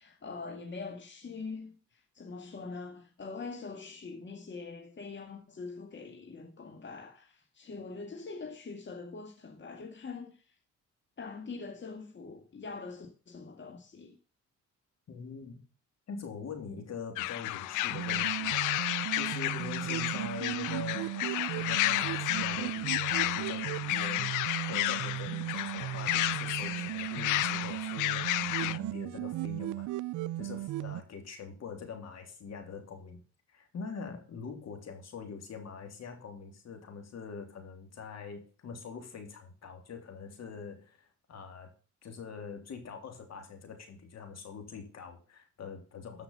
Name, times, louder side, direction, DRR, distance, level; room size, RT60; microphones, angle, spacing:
voice 1, 0.0-10.5 11.2-14.2, left 4 dB, 40° left, 2.1 m, -43 dB
voice 2, 15.1-15.6 16.1-21.1 21.5-29.9 30.3-33.2 33.5-41.7 42.0-46.2, left 5 dB, 60° left, 3.3 m, -44 dB
sound 1, 17.2-28.8, left 17 dB, 85° left, 0.5 m, -32 dB
sound 2, 17.9-31.0, right 15 dB, 80° right, 0.5 m, -36 dB
13.5 x 5.9 x 5.5 m
cardioid pair, 90°, 30 cm